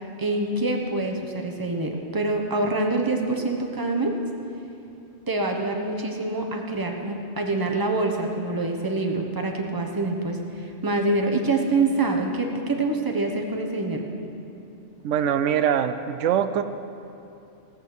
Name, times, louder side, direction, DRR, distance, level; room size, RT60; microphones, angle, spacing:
voice 1, 0.2-4.2 5.3-14.0, right 2 dB, 20° right, 2 dB, 1.1 m, -25 dB
voice 2, 15.0-16.6, right 8 dB, 80° right, 10 dB, 0.9 m, -23 dB
18.0 x 6.4 x 7.9 m, 2.8 s
omnidirectional pair, 1.2 m